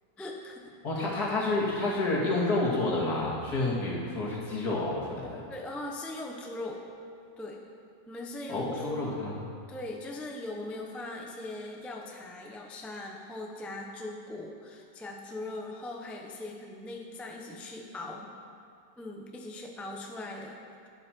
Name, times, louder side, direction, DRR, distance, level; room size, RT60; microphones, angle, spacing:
voice 1, 0.2-0.7 5.5-6.8 7.4-7.6 8.1-9.1 9.7-18.3 19.0-20.6, left 2 dB, ahead, 0 dB, 0.6 m, -40 dB
voice 2, 0.8-5.4 8.5-9.4, left 2 dB, 65° left, -5 dB, 2.7 m, -29 dB
12.0 x 10.5 x 4.5 m, 2.4 s
omnidirectional pair, 1.8 m